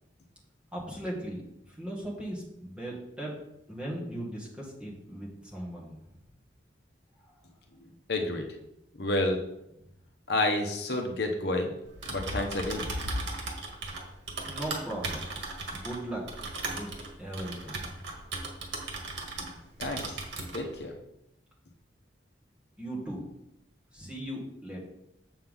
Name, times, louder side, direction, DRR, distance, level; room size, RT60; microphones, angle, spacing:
voice 1, 0.7-1.4 1.7-3.4 3.7-5.9 7.2-7.3 14.4-15.4 15.7-16.2 16.7-16.9 17.2-17.9 22.8-23.2 23.9-24.8, right 1 dB, 5° right, -5 dB, 2.1 m, -38 dB
voice 2, 8.1-8.5 9.0-9.4 10.3-11.7 12.1-12.9 19.4-19.5 19.8-20.0 20.5-20.9, left 2 dB, 60° left, 3 dB, 0.9 m, -29 dB
Typing, 11.9-19.5 19.8-20.6, right 2 dB, 85° right, 1.8 m, -36 dB
7.5 x 7.0 x 3.9 m, 0.83 s
head